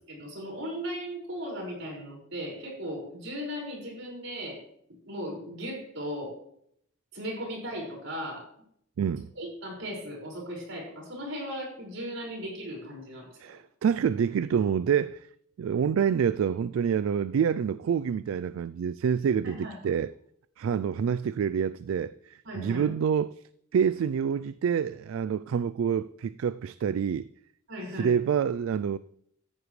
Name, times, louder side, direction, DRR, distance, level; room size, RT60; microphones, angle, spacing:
voice 1, 0.1-4.6 5.1-6.4 7.1-8.5 9.4-13.3 19.4-19.9 22.4-22.9 27.7-28.1, equal, 70° right, 5.5 m, -37 dB
voice 2, 9.0-9.3 13.4-15.3 15.6-20.1 20.6-23.3 23.7-27.3 27.9-29.0, right 7 dB, 85° right, 0.3 m, -27 dB
14.0 x 9.8 x 3.2 m
head